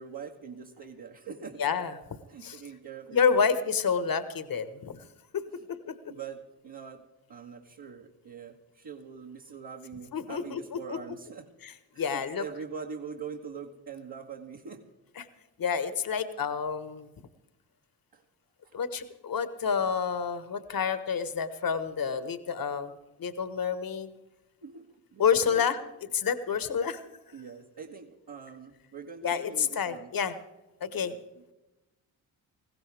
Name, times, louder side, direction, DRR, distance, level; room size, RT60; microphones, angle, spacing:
voice 1, 0.0-1.6 2.3-3.5 6.1-11.5 11.9-14.8 18.1-18.2 24.6-25.7 27.3-30.1 31.0-31.4, right 6 dB, 50° right, -1 dB, 1.7 m, -43 dB
voice 2, 1.6-1.9 2.4-2.6 3.1-5.0 5.3-5.4 5.7-5.9 10.1-10.8 11.6-11.7 12.0-12.4 15.2-15.3 15.6-17.1 18.7-22.9 23.2-24.1 25.2-25.8 26.1-27.0 29.2-30.3 30.8-31.1, left 6 dB, 45° left, 12 dB, 1.4 m, -29 dB
20.0 x 16.0 x 3.5 m, 1.0 s
hypercardioid pair, 45°, 49 cm